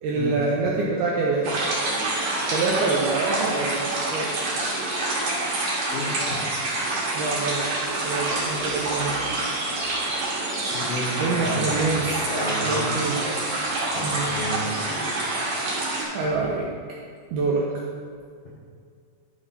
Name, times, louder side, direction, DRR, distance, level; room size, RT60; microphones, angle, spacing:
voice 1, 0.0-1.7 2.5-4.3 7.1-7.7 8.0-9.2 11.2-12.3 12.6-13.2 14.0-14.3 16.1-16.7 17.3-17.7, right 3 dB, 80° right, -3 dB, 2.3 m, -26 dB
sound 1, 1.4-16.0, right 2 dB, 55° right, 3.6 m, -27 dB
voice 2, 10.7-11.9 12.3-13.1 13.9-15.4 16.3-16.4, left 1 dB, 80° left, -6 dB, 1.8 m, -32 dB
12.0 x 5.6 x 4.1 m, 2.1 s
omnidirectional pair, 5.4 m